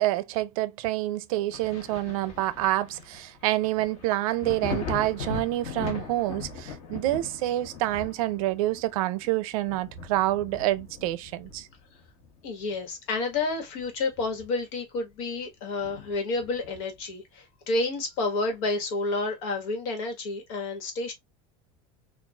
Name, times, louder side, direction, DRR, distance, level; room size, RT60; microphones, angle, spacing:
voice 1, 0.0-11.7, right 16 dB, 85° right, 0.5 m, -27 dB
Thunder, 1.5-12.9 13.3-14.8 15.1-15.2 15.8-17.1 18.5-18.6, left 5 dB, 35° left, 0.9 m, -40 dB
voice 2, 12.4-21.1, left 3 dB, 80° left, 1.5 m, -30 dB
4.5 x 2.4 x 2.3 m
cardioid pair, 170°, 18 cm